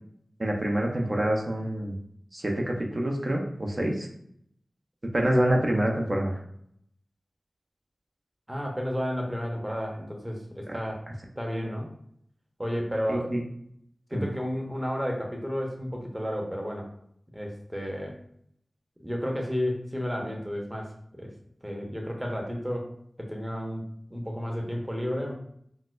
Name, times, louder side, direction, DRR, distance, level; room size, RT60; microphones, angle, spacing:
voice 1, 0.4-1.9 2.3-4.1 5.1-6.4 10.7-10.8 13.1-13.4 14.1-14.3, right 1 dB, 40° right, 0 dB, 0.7 m, -26 dB
voice 2, 8.5-11.0 11.4-11.9 12.6-13.3 14.1-16.9 17.3-18.2 19.0-21.3 21.6-22.9 23.2-25.3, equal, 10° right, 0 dB, 0.9 m, -32 dB
4.0 x 2.1 x 2.5 m, 0.69 s
cardioid pair, 45°, 0 cm